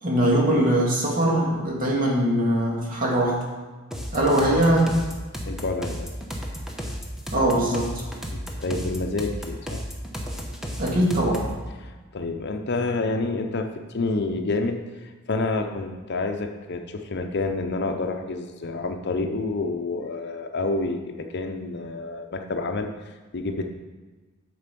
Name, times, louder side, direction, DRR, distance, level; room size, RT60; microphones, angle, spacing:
voice 1, 0.0-3.4 4.1-4.9 7.3-8.0 10.8-11.4, right 1 dB, 40° right, -3 dB, 2.2 m, -21 dB
sound 1, 3.9-11.6, equal, ahead, 1.0 m, -33 dB
voice 2, 5.5-6.1 8.3-9.8 11.8-23.7, left 3 dB, 50° left, 5 dB, 0.7 m, -29 dB
7.8 x 6.8 x 5.3 m, 1.3 s
head